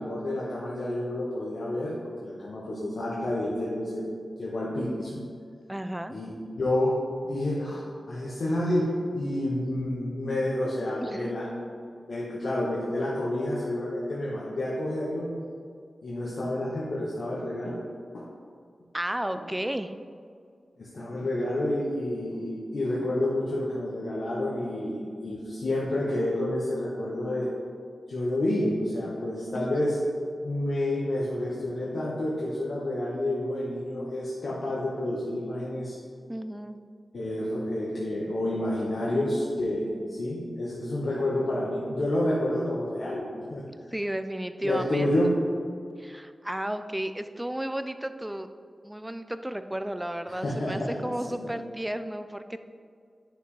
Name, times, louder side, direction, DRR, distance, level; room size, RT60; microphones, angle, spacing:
voice 1, 0.0-4.0 4.4-5.2 6.1-7.0 7.2-11.7 12.1-15.3 16.0-17.8 18.1-18.3 20.8-27.5 28.1-30.0 30.4-35.9 37.1-43.2 43.5-43.7 44.6-45.4 50.4-51.5, left 1 dB, 70° left, -6 dB, 1.3 m, -29 dB
voice 2, 5.7-6.2 11.0-11.3 18.9-19.9 29.5-29.8 36.3-36.8 43.9-45.1 46.0-48.5 48.8-52.6, right 1 dB, 10° right, 9 dB, 0.4 m, -33 dB
10.5 x 6.7 x 3.3 m, 2.2 s
wide cardioid pair, 120°, 0 cm